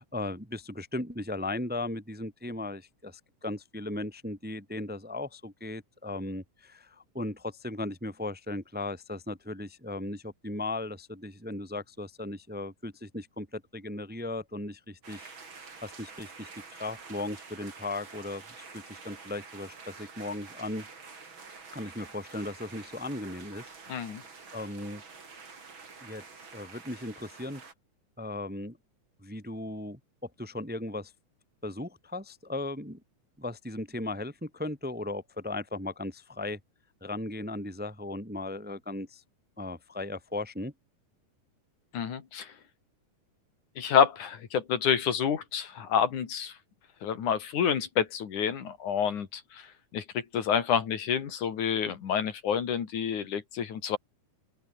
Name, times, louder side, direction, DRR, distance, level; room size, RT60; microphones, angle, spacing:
voice 1, 0.0-20.9 21.7-24.1 24.5-25.0 26.0-26.2 26.5-27.6 28.2-28.8 29.2-31.1 31.6-33.0 33.4-36.6 37.0-39.2 39.6-40.7, left 2 dB, 5° right, 1.7 m, -37 dB
sound 1, 15.0-27.7, right 4 dB, 40° right, 4.0 m, -48 dB
voice 2, 23.9-24.2 41.9-42.5 43.8-46.5 47.0-49.7 49.9-54.0, left 8 dB, 75° left, 3.9 m, -28 dB
open air
omnidirectional pair, 3.6 m